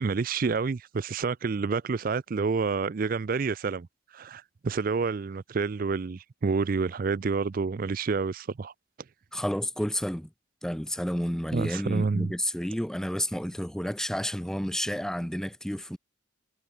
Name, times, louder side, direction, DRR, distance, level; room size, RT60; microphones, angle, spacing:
voice 1, 0.0-3.9 4.1-8.7 11.5-12.3, right 4 dB, 45° right, 0.4 m, -28 dB
voice 2, 9.3-10.3 10.6-16.0, equal, 5° left, 0.8 m, -30 dB
head